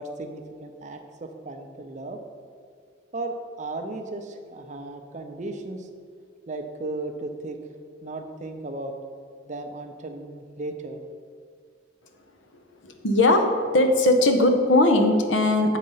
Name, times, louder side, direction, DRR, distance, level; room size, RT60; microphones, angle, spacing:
voice 1, 0.0-2.2 3.1-5.9 6.5-7.6 8.0-8.9 9.5-11.0, right 2 dB, 40° right, 5 dB, 0.5 m, -35 dB
voice 2, 12.8-15.8, left 2 dB, 80° left, 5 dB, 0.8 m, -19 dB
7.5 x 4.1 x 5.5 m, 2.2 s
head